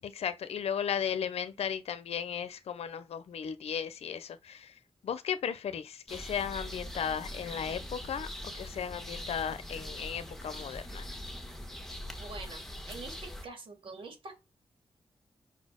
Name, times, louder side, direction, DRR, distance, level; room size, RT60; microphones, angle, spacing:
voice 1, 0.0-11.1, left 8 dB, 85° left, 0.7 m, -35 dB
sound 1, 6.1-13.5, left 1 dB, 5° left, 1.4 m, -42 dB
voice 2, 12.2-12.6 12.9-13.1 13.4-14.4, right 3 dB, 60° right, 2.9 m, -44 dB
5.7 x 4.2 x 6.3 m
wide cardioid pair, 140°, 10 cm